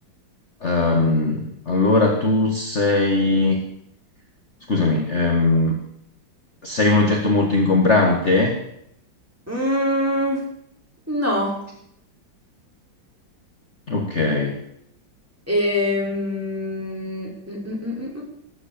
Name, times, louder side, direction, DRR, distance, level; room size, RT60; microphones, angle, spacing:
voice 1, 0.6-3.6 4.7-5.8 6.6-8.5 13.9-14.6, left 2 dB, 35° left, 1 dB, 2.0 m, -19 dB
voice 2, 9.5-10.4 11.1-11.6 15.5-18.2, left 1 dB, 5° right, -3 dB, 5.4 m, -24 dB
18.5 x 8.4 x 8.8 m, 0.74 s
omnidirectional pair, 2.1 m